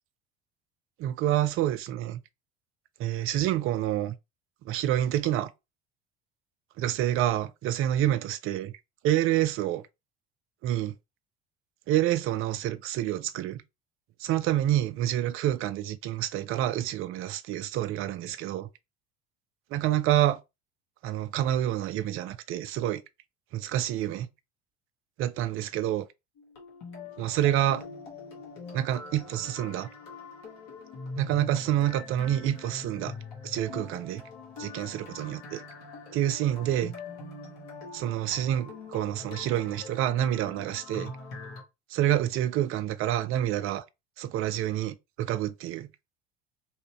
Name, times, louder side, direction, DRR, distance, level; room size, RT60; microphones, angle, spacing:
voice 1, 1.0-2.2 3.0-4.1 4.6-5.5 6.8-8.7 9.0-9.8 10.6-11.0 11.9-13.6 14.2-18.7 19.7-20.4 21.0-23.0 23.5-24.3 25.2-26.1 27.2-27.8 28.7-29.9 31.2-33.1 33.4-34.2 34.6-35.6 36.1-36.9 37.9-41.1 41.9-43.8 44.2-45.9, right 12 dB, 40° right, 0.5 m, -28 dB
sound 1, 26.4-41.6, left 3 dB, 60° left, 1.5 m, -43 dB
2.9 x 2.7 x 3.0 m
figure-of-eight pair, 65°, 32 cm